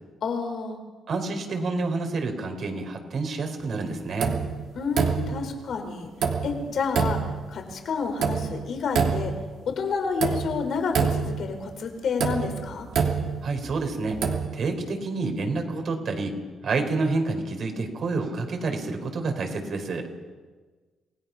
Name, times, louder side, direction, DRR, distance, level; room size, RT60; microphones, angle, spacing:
voice 1, 0.2-0.8 4.7-6.1 6.4-9.4 9.6-12.9, left 5 dB, 65° left, 5 dB, 4.1 m, -29 dB
voice 2, 1.1-4.3 13.4-14.2 14.5-16.3 16.6-20.1, right 3 dB, 55° right, 4 dB, 4.3 m, -28 dB
sound 1, 4.2-4.6 4.9-5.5 6.2-6.6 7.0-7.4 8.2-8.5 8.9-9.5 10.2-10.6 10.9-11.5 12.2-13.7 14.1-14.5, right 6 dB, 75° right, 2.9 m, -25 dB
28.0 x 17.5 x 5.8 m, 1.4 s
cardioid pair, 90°, 0 cm